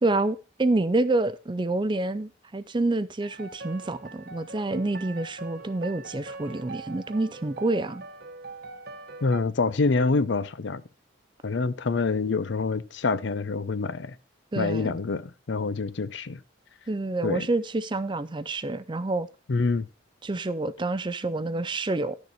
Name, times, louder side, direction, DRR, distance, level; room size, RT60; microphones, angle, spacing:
voice 1, 0.0-8.0 14.5-15.0 16.9-19.3 20.2-22.2, right 2 dB, 25° right, 0.4 m, -28 dB
sound 1, 3.2-9.4, right 3 dB, 50° right, 1.0 m, -42 dB
voice 2, 9.2-10.8 11.4-14.2 14.6-16.4 17.2-17.5 19.5-19.9, left 4 dB, 60° left, 0.5 m, -26 dB
12.0 x 6.7 x 4.2 m
head